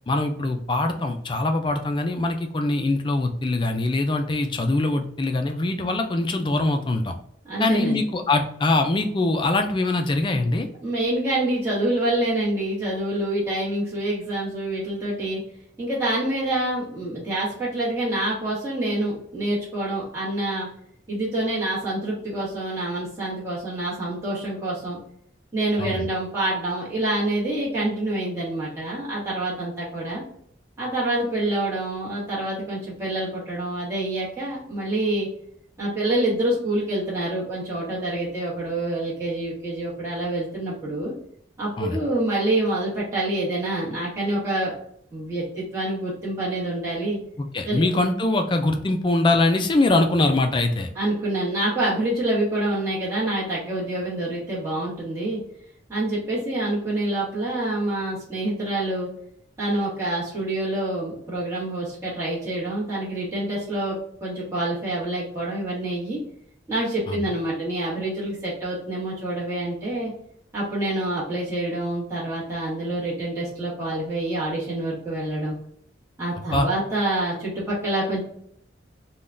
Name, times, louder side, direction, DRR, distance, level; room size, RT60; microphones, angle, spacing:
voice 1, 0.1-7.1 7.6-10.7 25.8-26.1 41.8-42.0 47.4-50.9 67.1-67.2 76.5-76.7, left 2 dB, 25° left, 5 dB, 0.4 m, -23 dB
voice 2, 7.5-8.0 10.8-15.4 15.8-20.7 21.1-25.0 25.5-30.2 30.8-35.3 35.8-41.1 41.6-44.7 45.1-47.2 47.6-47.8 50.9-55.4 55.9-59.1 59.6-66.2 66.7-70.1 70.5-75.5 76.2-78.2, right 1 dB, 15° right, -9 dB, 1.2 m, -26 dB
3.6 x 2.2 x 2.5 m, 0.67 s
head